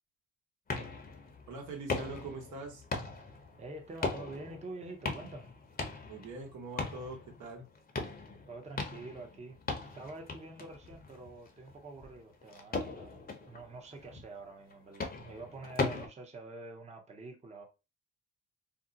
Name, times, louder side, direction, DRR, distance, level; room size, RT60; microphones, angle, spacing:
sound 1, 0.7-16.1, left 3 dB, 30° left, 0.8 m, -40 dB
voice 1, 1.5-2.8 6.1-7.7, right 3 dB, 75° right, 1.0 m, -43 dB
voice 2, 3.6-5.5 8.5-9.6 10.0-17.6, right 2 dB, 20° right, 0.7 m, -47 dB
2.6 x 2.0 x 3.8 m
cardioid pair, 90°, 30 cm